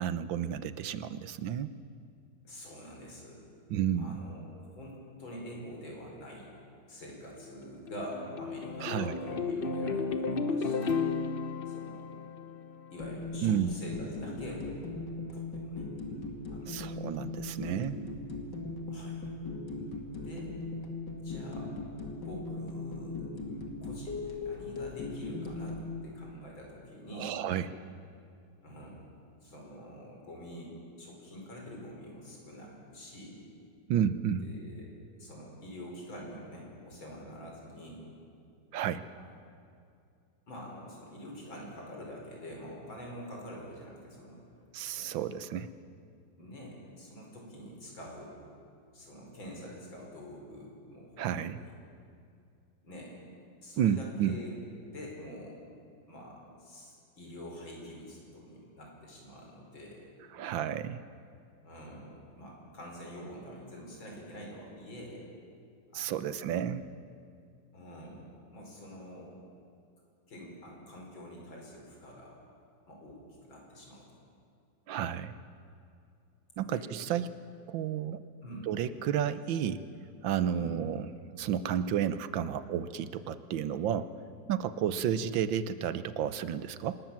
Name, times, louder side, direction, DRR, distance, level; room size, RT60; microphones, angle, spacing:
voice 1, 0.0-1.7 3.7-4.2 8.8-9.1 13.4-13.7 16.7-18.0 27.2-27.7 33.9-34.4 38.7-39.0 44.7-45.7 51.2-51.6 53.8-54.3 60.3-61.0 65.9-66.8 74.9-75.3 76.6-77.3 77.7-78.2 78.7-79.8 80.2-81.0 81.4-84.1 84.5-87.0, right 9 dB, 80° right, 14 dB, 1.6 m, -31 dB
voice 2, 2.4-3.4 4.0-11.1 11.7-12.1 12.9-14.7 15.3-15.9 16.5-16.9 18.9-19.2 20.0-20.5 21.2-21.7 22.3-23.3 23.8-27.4 28.6-29.0 29.4-33.4 34.4-34.9 35.2-38.1 39.1-39.3 40.5-44.4 45.0-45.2 46.4-48.3 48.9-51.7 52.8-53.2 53.6-54.5 54.8-55.6 56.1-60.1 61.6-65.3 65.9-66.4 67.7-69.3 70.3-72.4 72.9-74.1 76.6-76.8 78.4-78.7 80.6-80.8, equal, 85° left, -1 dB, 6.0 m, -46 dB
sound 1, 7.6-13.0, left 4 dB, 40° left, 1.0 m, -34 dB
sound 2, 13.0-25.9, left 3 dB, 60° left, 2.9 m, -39 dB
25.5 x 20.0 x 7.3 m, 2.4 s
omnidirectional pair, 2.1 m